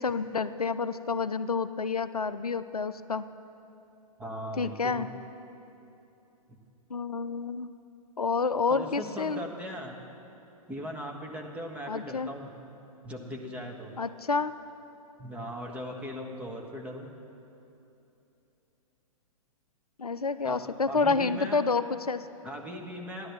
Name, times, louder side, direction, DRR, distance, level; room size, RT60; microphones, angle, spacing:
voice 1, 0.0-3.2 4.6-5.1 6.9-7.7 8.2-9.4 11.9-12.3 14.0-14.5 20.0-22.2, left 4 dB, 85° left, 13 dB, 0.5 m, -29 dB
voice 2, 4.2-5.1 6.5-6.6 8.7-10.0 10.7-12.5 13.0-13.9 15.2-17.1 20.4-20.6 20.9-21.6 22.4-23.3, equal, 5° right, 0 dB, 1.6 m, -39 dB
15.0 x 11.0 x 7.4 m, 2.9 s
figure-of-eight pair, 110°, 19 cm